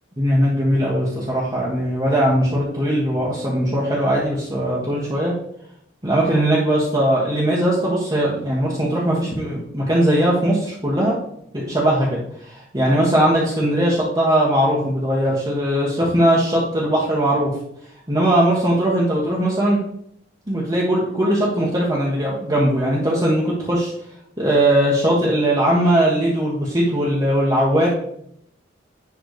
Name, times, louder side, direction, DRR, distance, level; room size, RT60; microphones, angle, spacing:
voice 1, 0.2-5.3 6.0-11.1 11.5-17.5 18.1-19.8 20.5-23.9 24.4-27.9, right 1 dB, 25° right, -7 dB, 1.7 m, -19 dB
10.5 x 3.8 x 5.0 m, 0.71 s
head